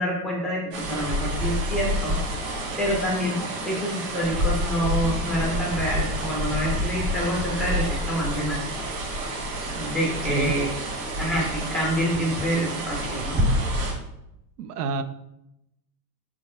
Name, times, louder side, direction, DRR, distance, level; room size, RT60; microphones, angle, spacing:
voice 1, 0.0-2.2 2.8-3.4 3.6-8.6 9.7-10.7 11.2-13.4, equal, ahead, -4 dB, 0.5 m, -27 dB
sound 1, 0.7-13.9, equal, 40° right, 2.6 m, -28 dB
voice 2, 10.2-10.6 14.6-15.0, right 5 dB, 80° right, 12 dB, 0.8 m, -28 dB
6.4 x 4.5 x 4.3 m, 0.84 s
supercardioid pair, 175°, 46 cm